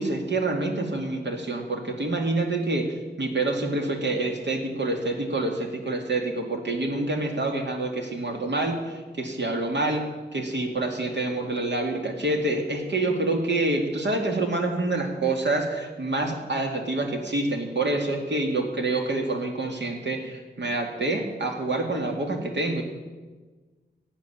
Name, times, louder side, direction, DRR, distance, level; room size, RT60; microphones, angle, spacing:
voice 1, 0.0-10.1 10.3-22.8, right 2 dB, 80° right, 3 dB, 2.3 m, -27 dB
15.5 x 8.8 x 7.3 m, 1.3 s
wide cardioid pair, 110°, 18 cm